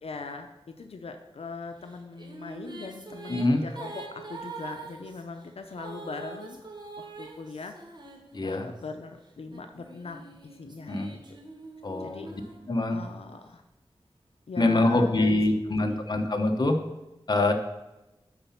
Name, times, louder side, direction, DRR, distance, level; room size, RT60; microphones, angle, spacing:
voice 1, 0.0-6.6 7.0-7.7 8.4-11.4 12.0-12.3 12.9-13.6 14.5-16.0, left 4 dB, 85° left, 5 dB, 0.6 m, -41 dB
Female singing, 1.9-8.8 9.5-13.2, right 3 dB, 50° right, 1.5 m, -44 dB
voice 2, 3.3-3.6 8.3-8.7 10.9-11.1 11.8-12.3 12.7-13.0 14.6-16.8 17.3-17.5, left 2 dB, 45° left, 4 dB, 1.0 m, -24 dB
9.6 x 4.1 x 5.8 m, 0.97 s
wide cardioid pair, 90°, 10 cm